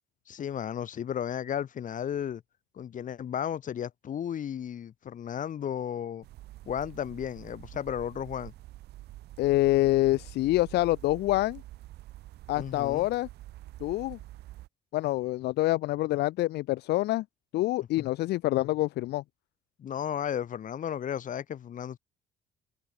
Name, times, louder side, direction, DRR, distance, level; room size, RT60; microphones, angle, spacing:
voice 1, 0.3-2.4 2.7-6.2 6.7-8.5 12.6-13.1 18.0-18.1 19.8-22.0, left 9 dB, 50° left, 5.6 m, -34 dB
sound 1, 6.2-14.7, right 16 dB, 75° right, 2.0 m, -47 dB
voice 2, 9.4-11.6 12.5-13.3 13.8-14.2 14.9-17.2 17.5-19.2, left 17 dB, 80° left, 1.5 m, -26 dB
cardioid pair, 110°, 17 cm